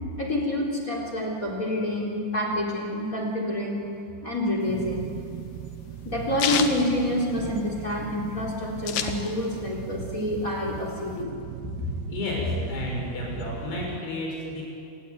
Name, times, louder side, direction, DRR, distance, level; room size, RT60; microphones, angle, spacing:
voice 1, 0.2-3.8 4.2-5.0 6.0-11.3, left 1 dB, 20° left, 0 dB, 3.8 m, -27 dB
sound 1, 4.6-14.0, right 11 dB, 85° right, 3.1 m, -39 dB
sound 2, 4.7-7.8 8.2-8.3 8.4-9.7 10.1-11.2, left 8 dB, 65° left, 2.9 m, -30 dB
voice 2, 11.8-14.6, left 2 dB, 80° left, -2 dB, 8.0 m, -31 dB
29.0 x 18.5 x 9.4 m, 2.6 s
omnidirectional pair, 4.6 m